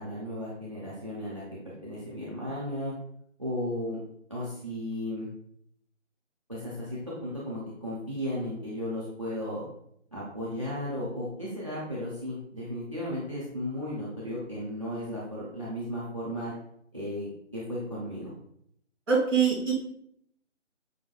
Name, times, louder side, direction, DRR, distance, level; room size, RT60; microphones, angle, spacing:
voice 1, 0.0-2.9 3.4-4.0 4.3-5.3 6.5-9.6 10.1-16.5 16.9-18.3, left 1 dB, 25° right, -6 dB, 0.5 m, -35 dB
voice 2, 19.1-19.7, right 6 dB, ahead, -21 dB, 0.8 m, -23 dB
6.2 x 2.1 x 2.3 m, 0.71 s
figure-of-eight pair, 160°, 37 cm